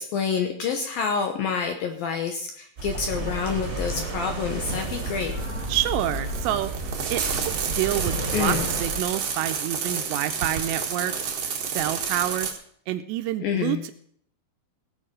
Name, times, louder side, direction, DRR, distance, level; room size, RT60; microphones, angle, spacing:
voice 1, 0.0-5.3 8.3-8.7 13.4-13.8, left 6 dB, 75° left, 5 dB, 2.2 m, -28 dB
sound 1, 2.8-9.0, right 1 dB, 25° right, 1.7 m, -32 dB
sound 2, 4.6-12.5, right 6 dB, 60° right, 1.6 m, -31 dB
sound 3, 5.3-9.9, right 2 dB, 35° left, 5.3 m, -42 dB
voice 2, 5.7-6.7 7.1-11.3 11.7-12.6 12.9-13.9, right 13 dB, 80° right, 9 dB, 2.6 m, -28 dB
18.0 x 7.2 x 6.2 m, 0.64 s
omnidirectional pair, 5.4 m